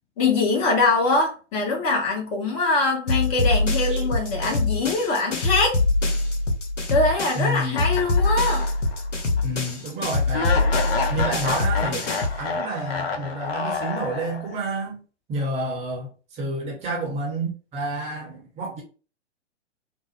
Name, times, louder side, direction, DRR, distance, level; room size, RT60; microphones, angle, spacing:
voice 1, 0.2-5.8 6.9-8.7, left 3 dB, 30° left, 1.0 m, -23 dB
sound 1, 3.1-7.5 7.8-12.4, left 3 dB, 90° left, 0.7 m, -24 dB
voice 2, 7.3-7.9 9.4-10.7 11.1-15.0 15.3-16.1 16.3-18.8, right 1 dB, 20° right, 0.8 m, -29 dB
sound 2, 7.7-9.0 9.4-9.5 10.3-14.6, left 4 dB, 55° left, 0.8 m, -29 dB
3.8 x 2.0 x 3.0 m
figure-of-eight pair, 115°, 36 cm